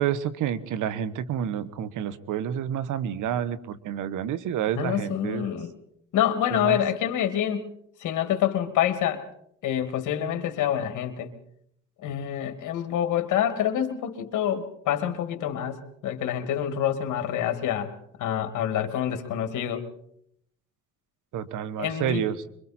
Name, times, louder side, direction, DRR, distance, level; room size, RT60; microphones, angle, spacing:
voice 1, 0.0-5.4 6.5-6.8 21.3-22.4, right 9 dB, 85° right, 15 dB, 1.3 m, -29 dB
voice 2, 4.8-5.7 6.1-7.7 8.0-9.2 9.6-11.3 12.0-17.9 18.2-19.8 21.8-22.2, left 10 dB, 85° left, 8 dB, 2.4 m, -27 dB
25.5 x 23.5 x 4.4 m, 0.71 s
cardioid pair, 90°, 30 cm